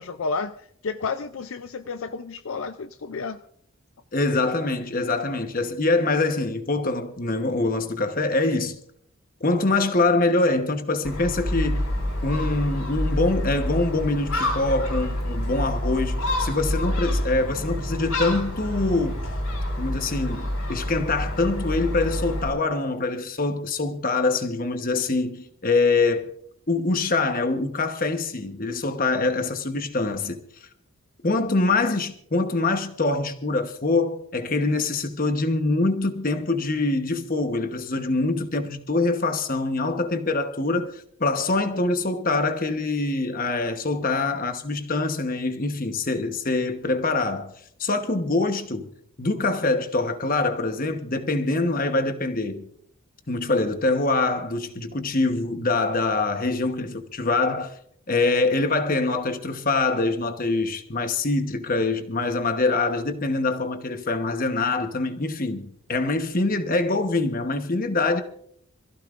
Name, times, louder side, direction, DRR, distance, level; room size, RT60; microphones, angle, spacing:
voice 1, 0.0-3.4, left 4 dB, 65° left, 0.5 m, -31 dB
voice 2, 4.1-8.8 9.4-11.9 12.2-19.2 19.8-26.3 26.7-30.4 31.2-47.5 47.8-48.9 49.2-52.7 53.3-57.8 58.1-68.2, left 3 dB, 40° left, 1.1 m, -24 dB
Gull seagull, 11.0-22.5, left 1 dB, 85° left, 5.1 m, -27 dB
26.0 x 15.5 x 2.5 m
head